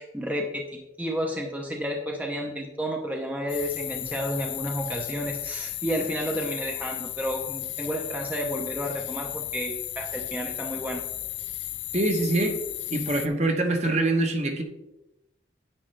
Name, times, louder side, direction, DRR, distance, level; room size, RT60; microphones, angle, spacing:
voice 1, 0.0-11.0, equal, 10° right, 1 dB, 0.8 m, -31 dB
sound 1, 3.5-13.3, left 14 dB, 75° left, 0.5 m, -34 dB
voice 2, 11.9-12.6 12.9-14.6, right 2 dB, 35° right, 4 dB, 1.1 m, -24 dB
9.8 x 8.8 x 3.3 m, 0.95 s
head